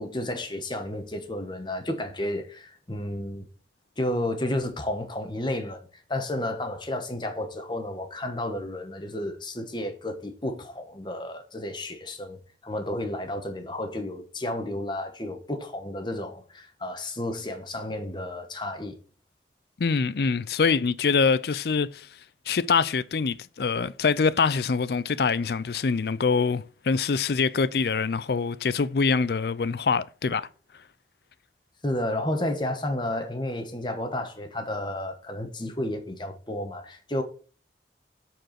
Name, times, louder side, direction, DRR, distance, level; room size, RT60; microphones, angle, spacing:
voice 1, 0.0-3.5 4.0-19.0 31.8-37.2, left 1 dB, 25° left, 1.2 m, -32 dB
voice 2, 19.8-22.1 22.5-30.5, left 5 dB, 60° left, 0.4 m, -24 dB
7.9 x 4.6 x 5.8 m
head